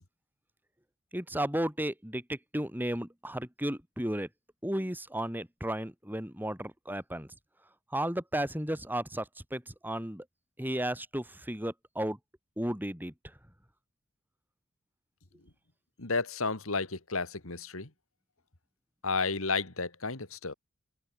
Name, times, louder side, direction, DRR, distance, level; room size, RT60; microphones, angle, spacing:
voice 1, 1.1-4.3 4.6-7.3 7.9-10.2 10.6-12.2 12.6-13.1, right 1 dB, 10° right, 6.7 m, -34 dB
voice 2, 16.0-17.9 19.0-20.5, left 4 dB, 65° left, 2.3 m, -32 dB
head